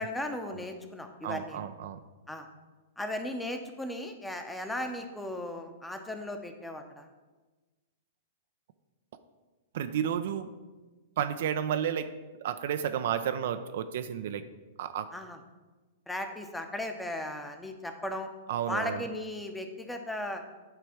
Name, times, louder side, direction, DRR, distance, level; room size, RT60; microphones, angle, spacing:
voice 1, 0.0-1.7 2.3-2.5 3.0-7.1 15.1-15.4 16.1-18.3 18.7-20.4, left 1 dB, 5° left, 5 dB, 0.8 m, -36 dB
voice 2, 1.2-2.0 9.7-10.5 11.2-12.1 12.4-14.4 14.8-15.1 18.5-19.0, right 9 dB, 60° right, 9 dB, 0.4 m, -31 dB
9.1 x 3.3 x 5.7 m, 1.2 s
hypercardioid pair, 110°, 0 cm